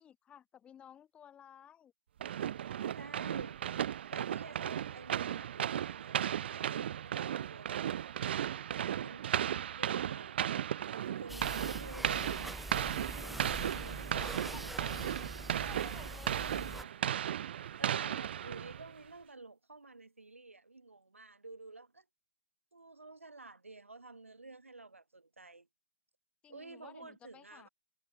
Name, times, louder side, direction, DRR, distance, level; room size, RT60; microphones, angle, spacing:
voice 1, 0.0-1.9 14.2-15.0 15.6-16.4 26.4-27.7, left 9 dB, 15° left, 6.2 m, -55 dB
sound 1, 2.2-19.0, right 10 dB, 55° right, 1.5 m, -36 dB
voice 2, 2.9-3.6 4.1-8.0 9.0-10.4 11.2-12.5 13.2-15.3 16.4-16.9 17.5-22.0 22.7-25.7 26.5-27.7, right 3 dB, 85° right, 6.1 m, -51 dB
sound 2, 11.3-16.8, right 1 dB, ahead, 1.9 m, -44 dB
figure-of-eight pair, 125°, 7 cm